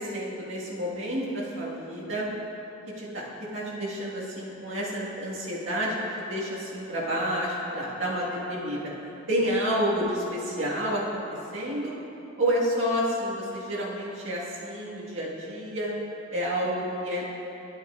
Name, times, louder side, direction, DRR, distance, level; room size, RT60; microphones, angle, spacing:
voice 1, 0.0-2.3 3.0-3.2 3.5-8.9 9.3-11.2 11.5-11.9 12.4-15.9 16.3-17.3, equal, 75° right, -6 dB, 1.9 m, -29 dB
11.0 x 9.3 x 2.6 m, 3.0 s
head